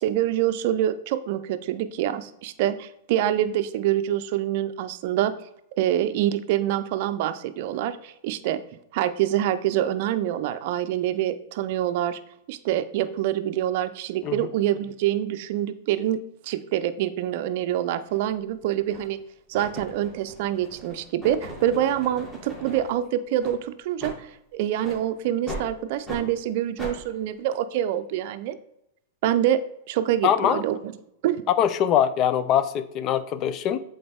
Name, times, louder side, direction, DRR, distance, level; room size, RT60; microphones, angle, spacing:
voice 1, 0.0-5.3 5.8-8.6 8.9-12.2 12.5-16.2 16.5-19.2 19.5-24.3 24.5-28.6 29.2-29.6 29.9-30.9 31.2-31.4, right 12 dB, 55° right, 12 dB, 0.5 m, -26 dB
sound 1, 18.1-18.2 18.9-19.2 19.5-22.9 23.4-23.6 24.0-24.2 24.8-25.0 25.5-25.7 26.0-26.2 26.8-27.0, equal, 10° left, 2.5 m, -38 dB
voice 2, 30.2-30.6 31.6-33.8, left 9 dB, 40° left, 13 dB, 0.5 m, -22 dB
7.7 x 3.9 x 3.5 m, 0.80 s
hypercardioid pair, 120°, 0 cm